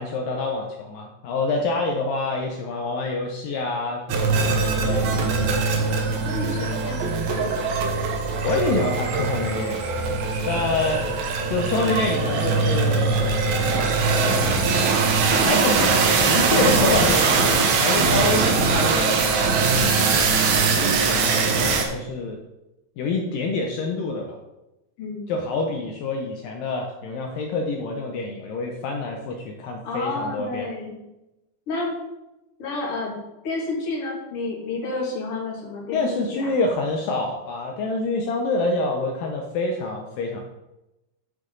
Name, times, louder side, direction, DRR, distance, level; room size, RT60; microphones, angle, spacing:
voice 1, 0.0-5.1 8.4-9.8 10.1-10.2 10.5-11.0 11.5-13.2 13.5-14.0 15.4-19.2 19.8-20.3 21.1-22.4 23.0-24.4 25.3-30.7 35.9-40.4, left 3 dB, 80° left, 1 dB, 2.0 m, -27 dB
sound 1, 4.1-21.8, right 4 dB, 70° right, 2.7 m, -21 dB
voice 2, 5.9-7.8 25.0-25.3 29.8-31.0 31.7-31.9 32.6-33.1 33.4-36.6, left 3 dB, 40° left, -4 dB, 2.5 m, -30 dB
9.7 x 6.2 x 3.9 m, 0.96 s
omnidirectional pair, 4.9 m